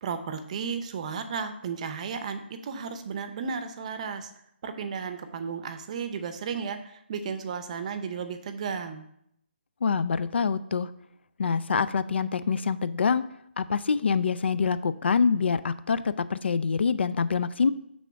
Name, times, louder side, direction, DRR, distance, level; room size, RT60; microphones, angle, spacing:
voice 1, 0.0-4.3 4.6-9.1, right 6 dB, 35° right, 9 dB, 0.6 m, -34 dB
voice 2, 9.8-10.9 11.4-13.2 13.6-17.7, left 5 dB, 70° left, 15 dB, 0.4 m, -25 dB
6.1 x 3.6 x 5.7 m, 0.74 s
hypercardioid pair, 155°, 6 cm